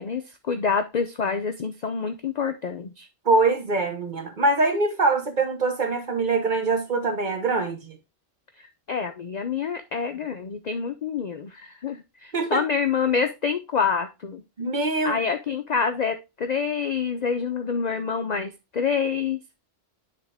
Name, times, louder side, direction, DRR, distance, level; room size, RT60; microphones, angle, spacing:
voice 1, 0.0-3.1 8.9-14.4 15.0-19.4, left 6 dB, 50° left, 0.5 m, -27 dB
voice 2, 3.2-8.0 12.3-12.6 14.6-15.2, right 3 dB, 40° right, 1.2 m, -23 dB
9.7 x 3.5 x 3.4 m
omnidirectional pair, 1.3 m